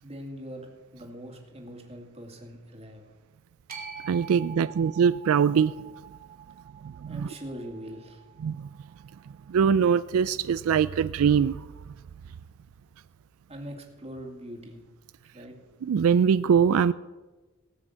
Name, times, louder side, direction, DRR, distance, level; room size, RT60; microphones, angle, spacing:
voice 1, 0.0-3.1 7.1-8.2 13.5-14.8 15.3-15.6, equal, 30° right, 2 dB, 2.3 m, -42 dB
sound 1, 3.7-9.9, right 7 dB, 45° right, 2.5 m, -46 dB
voice 2, 4.1-5.7 6.8-7.3 8.4-8.7 9.5-11.7 15.8-16.9, right 7 dB, 85° right, 15 dB, 0.3 m, -22 dB
18.5 x 6.2 x 8.1 m, 1.2 s
head